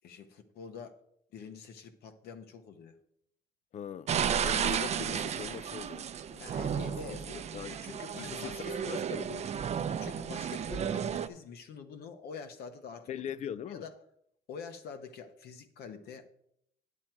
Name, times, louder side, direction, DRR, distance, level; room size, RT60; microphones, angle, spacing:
voice 1, 0.0-1.0 1.3-2.9 6.4-7.4 7.7-9.0 9.9-13.2 13.7-13.9 14.5-16.3, left 6 dB, 70° left, 1.1 m, -46 dB
voice 2, 3.7-4.1 4.4-6.5 7.1-7.8 8.1-9.4 13.1-13.9, left 8 dB, 45° left, 0.4 m, -41 dB
sound 1, 4.1-11.3, right 8 dB, 40° right, 0.6 m, -33 dB
9.9 x 7.5 x 4.6 m
cardioid pair, 110°, 17 cm